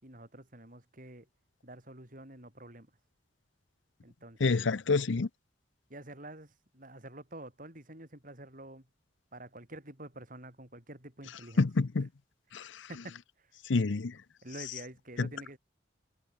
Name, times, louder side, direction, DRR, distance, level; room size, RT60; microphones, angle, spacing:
voice 1, 0.0-1.3 1.6-2.9 4.0-4.7 5.9-8.9 9.3-11.7 12.9-13.5 14.4-15.6, right 1 dB, 45° right, 6.0 m, -48 dB
voice 2, 4.4-5.3 11.6-12.1 12.5-12.6 13.7-14.1 15.2-15.3, left 3 dB, 90° left, 0.7 m, -27 dB
head